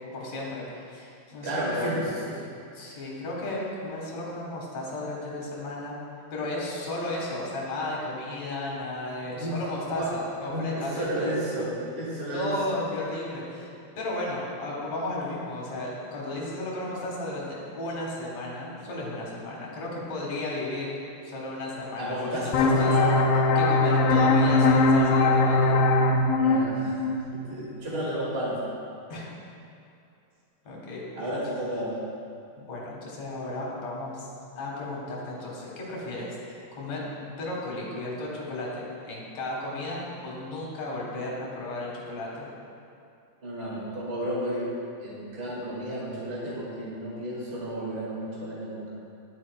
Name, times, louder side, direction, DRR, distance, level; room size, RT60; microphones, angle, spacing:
voice 1, 0.1-1.9 2.7-5.9 6.3-11.3 12.2-13.7 14.0-21.0 21.2-23.1 23.6-25.8 29.1-29.3 30.6-31.0 32.6-34.3 34.6-42.5, left 2 dB, 60° left, -4 dB, 2.4 m, -34 dB
voice 2, 1.4-2.5 9.2-9.5 9.9-10.1 10.4-12.5 22.0-23.1 26.4-27.0 27.5-28.5 31.1-31.9 43.4-44.7 45.0-48.9, right 1 dB, 30° right, -7 dB, 1.2 m, -32 dB
sound 1, 22.5-27.9, left 2 dB, 80° left, 2.1 m, -21 dB
11.0 x 7.4 x 2.2 m, 2.6 s
omnidirectional pair, 4.1 m